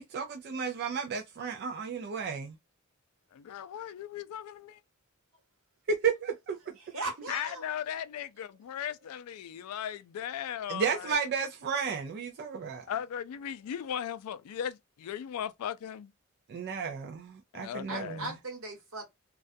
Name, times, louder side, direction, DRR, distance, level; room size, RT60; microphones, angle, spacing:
voice 1, 0.0-2.5 5.9-6.6 10.7-12.8 16.5-18.3, right 6 dB, 50° right, 0.4 m, -33 dB
voice 2, 3.3-4.8 7.3-11.1 12.9-16.1 17.5-18.3, left 9 dB, 85° left, 0.3 m, -37 dB
voice 3, 6.9-7.7 17.9-19.1, right 2 dB, 70° right, 1.2 m, -38 dB
2.3 x 2.2 x 2.4 m
head